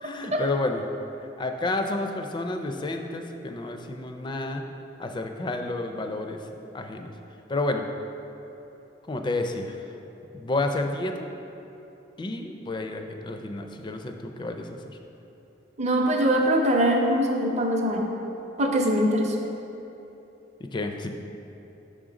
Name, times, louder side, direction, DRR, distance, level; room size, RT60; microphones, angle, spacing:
voice 1, 0.0-0.9 1.4-4.6 5.0-6.4 6.7-7.1 7.5-7.8 9.1-9.7 10.3-11.3 12.2-14.7 20.7-21.1, left 2 dB, 25° left, 5 dB, 0.4 m, -30 dB
voice 2, 15.8-18.1 18.6-19.3, equal, 40° right, 1 dB, 0.6 m, -22 dB
6.5 x 3.7 x 5.0 m, 3.0 s
head